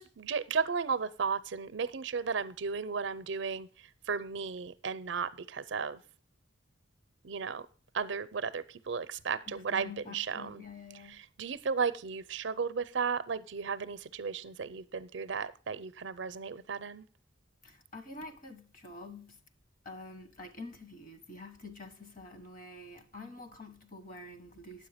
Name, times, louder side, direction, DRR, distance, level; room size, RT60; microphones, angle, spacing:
voice 1, 0.0-3.7 4.1-6.0 7.2-7.6 7.9-10.6 11.4-17.0, right 5 dB, 65° right, 0.5 m, -34 dB
voice 2, 9.5-11.2 17.6-19.4 19.8-24.9, left 2 dB, 45° left, 1.3 m, -47 dB
9.6 x 7.7 x 5.0 m
head